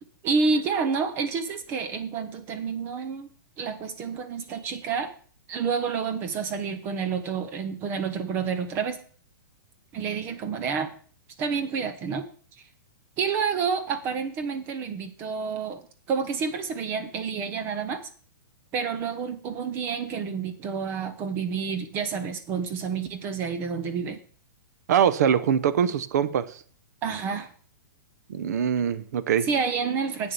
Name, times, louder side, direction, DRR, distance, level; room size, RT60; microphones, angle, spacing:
voice 1, 0.2-3.3 3.6-5.1 5.5-9.0 9.9-10.9 11.4-12.3 13.2-15.8 16.1-18.1 18.7-24.2 27.0-27.5 29.4-30.3, right 5 dB, 20° right, 0.8 m, -29 dB
voice 2, 24.9-26.6 28.3-29.5, right 8 dB, 55° right, 0.8 m, -23 dB
8.4 x 7.1 x 6.8 m
hypercardioid pair, 170°, 11 cm